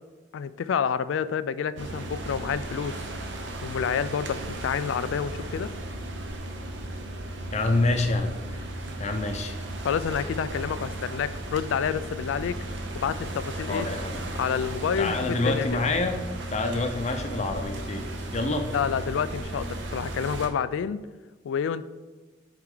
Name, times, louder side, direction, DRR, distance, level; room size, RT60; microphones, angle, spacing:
voice 1, 0.3-3.1 3.6-5.7 9.8-12.6 12.9-13.9 14.4-15.7 18.7-21.0 21.4-21.8, left 7 dB, 85° left, 15 dB, 0.3 m, -28 dB
sound 1, 1.8-20.5, right 1 dB, 70° right, 0.8 m, -35 dB
voice 2, 7.5-8.7 9.0-9.6 13.7-14.2 15.0-16.2 16.5-18.1 18.3-18.7, left 2 dB, 35° left, 6 dB, 0.6 m, -27 dB
6.1 x 4.6 x 3.8 m, 1.3 s
head